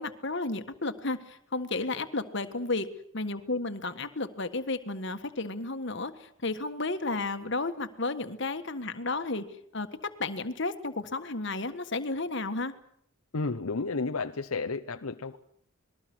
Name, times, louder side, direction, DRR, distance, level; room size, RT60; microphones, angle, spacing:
voice 1, 0.0-2.9 3.1-9.4 9.7-12.7, left 3 dB, 55° left, 9 dB, 1.6 m, -32 dB
voice 2, 13.3-15.4, left 3 dB, 85° left, 7 dB, 0.9 m, -32 dB
27.0 x 20.5 x 6.2 m, 0.67 s
head